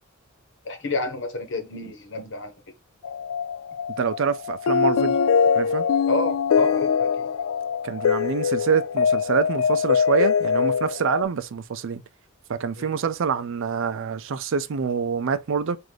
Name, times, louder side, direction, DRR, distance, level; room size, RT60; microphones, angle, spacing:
voice 1, 0.6-2.5 6.1-7.3 12.8-13.0, left 2 dB, 60° left, 1.1 m, -29 dB
sound 1, 3.0-11.2, left 6 dB, 80° left, 0.3 m, -23 dB
voice 2, 4.0-5.2 5.5-5.9 7.8-12.0 12.5-15.8, right 6 dB, 65° right, 0.4 m, -26 dB
3.9 x 2.5 x 4.7 m
head